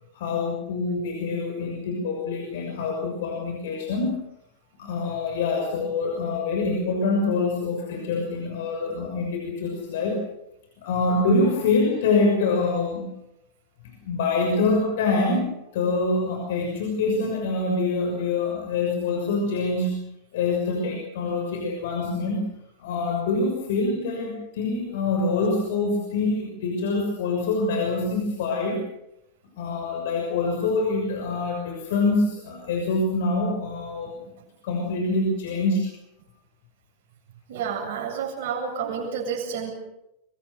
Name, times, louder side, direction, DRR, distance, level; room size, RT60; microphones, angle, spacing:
voice 1, 0.1-4.1 4.8-10.2 10.8-13.1 14.0-20.0 20.3-22.4 22.8-28.8 29.6-34.2 34.6-35.8, left 3 dB, 55° left, 1 dB, 6.2 m, -25 dB
voice 2, 37.5-39.7, right 6 dB, 50° right, 2 dB, 7.9 m, -30 dB
26.0 x 23.5 x 6.6 m, 0.82 s
figure-of-eight pair, 90°, 0 cm